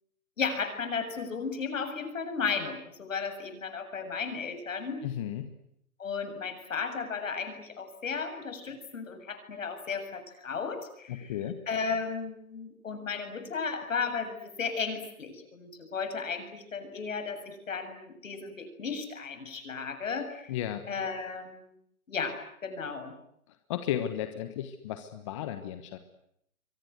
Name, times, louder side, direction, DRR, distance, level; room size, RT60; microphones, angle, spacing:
voice 1, 0.4-5.0 6.0-11.4 11.7-20.5 20.9-21.8 22.1-23.1, left 5 dB, 65° left, 8 dB, 7.4 m, -34 dB
voice 2, 5.0-5.5 11.1-11.5 20.5-20.8 23.7-26.0, left 11 dB, 20° left, 8 dB, 1.3 m, -34 dB
29.5 x 24.0 x 8.2 m, 0.71 s
hypercardioid pair, 160°, 42 cm